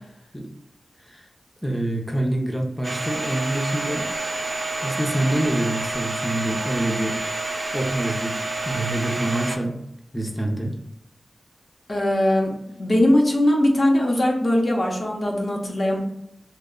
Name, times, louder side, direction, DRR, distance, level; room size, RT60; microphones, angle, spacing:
voice 1, 1.6-4.1 4.8-7.2 7.7-8.4 8.6-9.8 10.1-10.8, right 1 dB, ahead, 0 dB, 0.6 m, -26 dB
Domestic sounds home sounds, 2.8-9.6, right 2 dB, 45° right, 0.6 m, -29 dB
voice 2, 11.9-12.5 12.8-16.0, left 1 dB, 50° left, 0 dB, 0.8 m, -20 dB
3.1 x 2.1 x 3.6 m, 0.80 s
wide cardioid pair, 65°, 0 cm